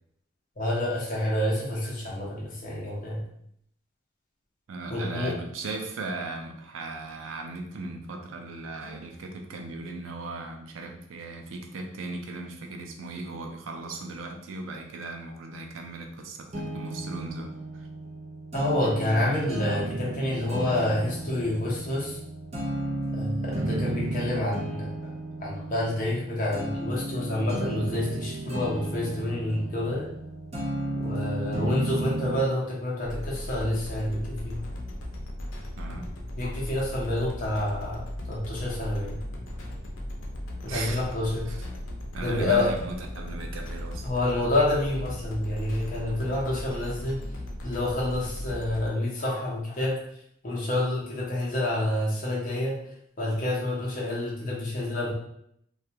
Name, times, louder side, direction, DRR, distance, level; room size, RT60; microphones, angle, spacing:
voice 1, 0.6-3.2 4.9-5.4 18.5-22.2 23.1-24.9 25.4-30.1 31.0-34.6 36.4-38.0 38.3-39.2 40.6-41.5 42.2-42.7 44.0-47.2 47.6-50.0 50.4-52.8 53.2-55.1, left 1 dB, 40° left, -4 dB, 0.6 m, -28 dB
voice 2, 4.7-17.9 35.8-36.1 40.7-41.1 41.5-41.7 42.1-44.1, right 3 dB, 90° right, 3 dB, 0.4 m, -37 dB
sound 1, 16.5-32.5, right 1 dB, 35° right, 0.5 m, -33 dB
sound 2, 33.0-48.9, left 1 dB, 80° left, 0.5 m, -37 dB
2.3 x 2.1 x 2.7 m, 0.72 s
head